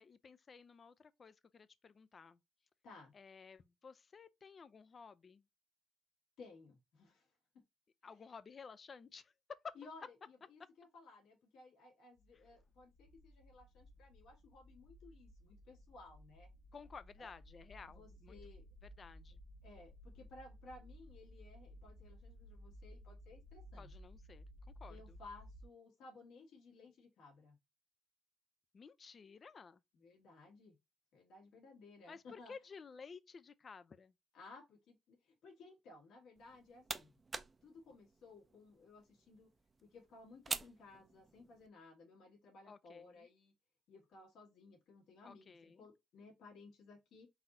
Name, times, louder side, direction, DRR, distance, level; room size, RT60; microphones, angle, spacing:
voice 1, 0.0-2.4 3.1-5.4 8.0-9.3 9.6-9.7 12.5-12.6 16.7-18.4 19.0-19.4 23.8-25.2 28.7-29.8 32.1-34.1 42.7-43.3 45.2-45.9, left 5 dB, 40° left, 0.4 m, -54 dB
voice 2, 6.4-7.3 9.8-16.5 17.2-17.3 17.9-18.7 19.6-23.9 24.9-27.6 29.9-30.8 31.1-32.5 34.3-37.2 37.6-39.5 39.8-43.5 43.9-47.3, left 3 dB, 75° left, 1.8 m, -58 dB
sound 1, 12.2-25.6, equal, 60° left, 0.8 m, -57 dB
sound 2, 36.4-41.7, right 3 dB, 30° right, 0.5 m, -48 dB
4.0 x 2.6 x 4.1 m
cardioid pair, 90°, 0 cm